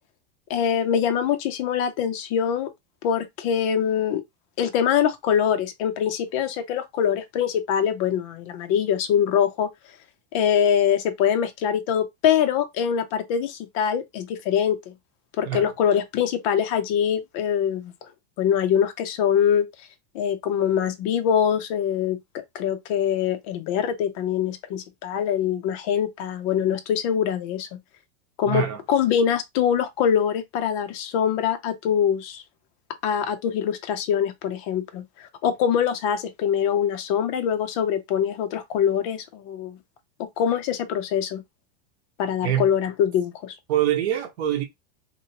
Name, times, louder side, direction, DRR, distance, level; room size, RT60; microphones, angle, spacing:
voice 1, 0.5-2.7 3.0-4.2 4.6-9.7 10.3-14.9 15.4-17.9 18.4-19.7 20.1-22.2 22.5-27.7 28.4-32.4 33.0-39.8 40.2-41.4 42.2-43.6, left 8 dB, 30° left, 0.4 m, -23 dB
voice 2, 28.4-28.8 42.4-42.7 43.7-44.6, right 11 dB, 70° right, 1.1 m, -24 dB
2.9 x 2.8 x 2.8 m
supercardioid pair, 175°, 33 cm